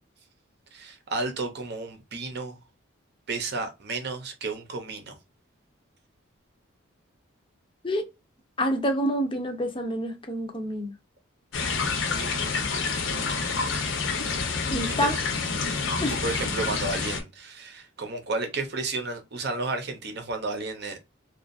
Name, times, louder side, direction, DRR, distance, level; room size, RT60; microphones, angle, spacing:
voice 1, 0.7-2.6 3.3-5.2 15.0-15.1 16.0-21.0, right 3 dB, 55° right, 0.7 m, -32 dB
voice 2, 8.6-10.9 13.1-13.4 14.7-15.2 16.0-16.2, equal, 25° left, 0.5 m, -27 dB
sound 1, 11.5-17.2, left 4 dB, 70° left, 0.7 m, -28 dB
2.6 x 2.4 x 2.4 m
head